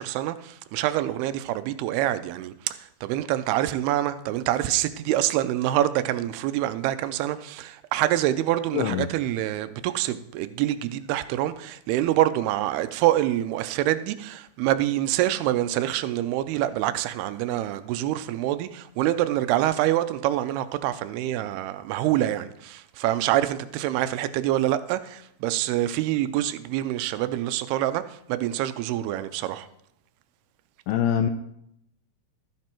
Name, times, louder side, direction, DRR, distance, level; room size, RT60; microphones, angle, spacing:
voice 1, 0.0-29.7, right 13 dB, 85° right, 2.5 m, -26 dB
voice 2, 8.7-9.1 30.9-31.3, left 9 dB, 80° left, 2.1 m, -23 dB
13.5 x 9.4 x 4.4 m
omnidirectional pair, 4.6 m